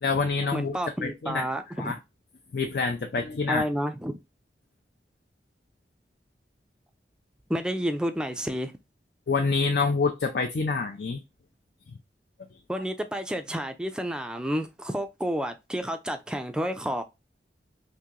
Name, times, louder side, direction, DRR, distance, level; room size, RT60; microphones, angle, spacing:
voice 1, 0.0-1.4 1.8-2.0 2.5-3.6 9.3-11.2, left 4 dB, 65° left, 0.4 m, -26 dB
voice 2, 0.5-1.9 3.5-4.2 7.5-8.7 12.7-17.0, equal, 5° right, 0.3 m, -30 dB
2.9 x 2.7 x 3.6 m
head